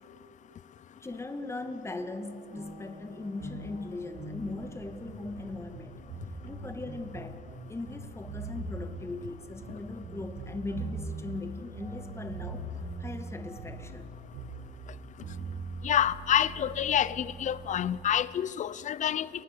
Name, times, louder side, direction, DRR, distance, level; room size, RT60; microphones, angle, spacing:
voice 1, 1.0-5.9 6.5-7.4 7.7-12.7 13.0-14.2, left 2 dB, 15° left, 2.1 m, -39 dB
sound 1, 2.5-18.1, right 3 dB, 85° right, 6.4 m, -42 dB
voice 2, 15.8-19.3, left 10 dB, 45° left, 0.8 m, -27 dB
30.0 x 19.0 x 6.8 m
cardioid pair, 110°, 17 cm